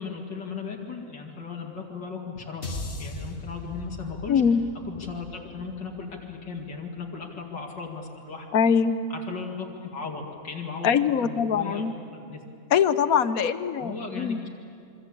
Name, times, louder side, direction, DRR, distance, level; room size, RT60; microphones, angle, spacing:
voice 1, 0.0-2.7 3.0-4.4 4.8-8.5 9.1-12.4 13.8-14.5, left 5 dB, 80° left, -1 dB, 2.9 m, -36 dB
sound 1, 2.6-7.0, left 2 dB, 40° left, 2.2 m, -39 dB
voice 2, 4.3-4.6 8.5-9.0 10.8-11.9 12.7-14.4, left 7 dB, 60° left, 13 dB, 1.2 m, -22 dB
26.5 x 24.0 x 8.7 m, 2.6 s
omnidirectional pair, 1.9 m